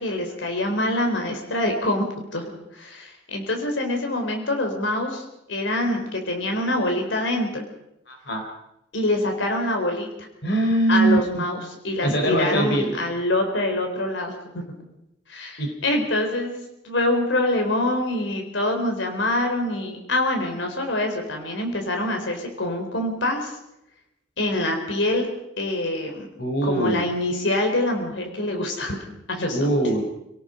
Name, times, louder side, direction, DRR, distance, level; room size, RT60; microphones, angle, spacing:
voice 1, 0.0-7.6 8.9-10.1 10.9-14.6 15.3-23.5 24.4-25.3 25.6-26.3 26.6-29.0 29.3-29.8, left 1 dB, 85° left, 4 dB, 4.2 m, -25 dB
voice 2, 8.1-8.4 10.4-11.4 12.0-12.9 15.6-15.7 26.4-27.1 29.5-30.0, right 2 dB, 65° left, 4 dB, 4.1 m, -22 dB
29.5 x 18.5 x 5.2 m, 0.83 s
head